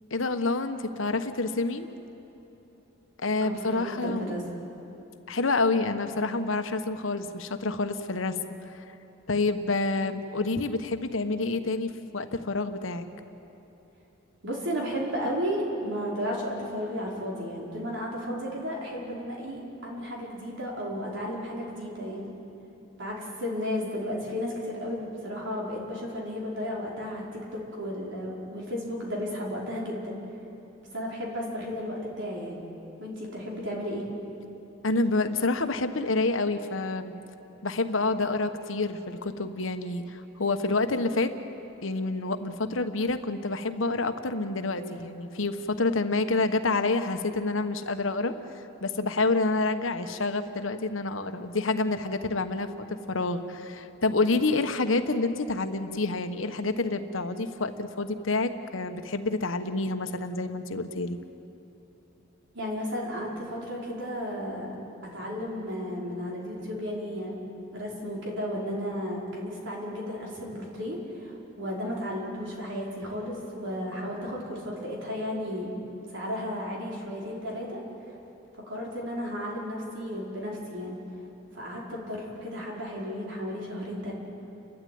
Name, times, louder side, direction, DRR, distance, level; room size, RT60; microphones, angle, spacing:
voice 1, 0.1-1.9 3.2-4.4 5.3-8.4 8.6-8.8 9.3-13.0 34.8-37.1 37.6-41.3 41.8-48.3 48.8-61.2, left 3 dB, 80° left, 8 dB, 1.2 m, -28 dB
voice 2, 3.4-4.4 14.4-22.3 23.0-30.2 30.9-32.6 33.0-34.0 62.5-64.7 65.1-67.4 67.7-75.7 76.1-77.8 78.7-81.0 81.5-84.1, equal, 65° right, -3 dB, 5.1 m, -33 dB
30.0 x 13.0 x 9.5 m, 3.0 s
head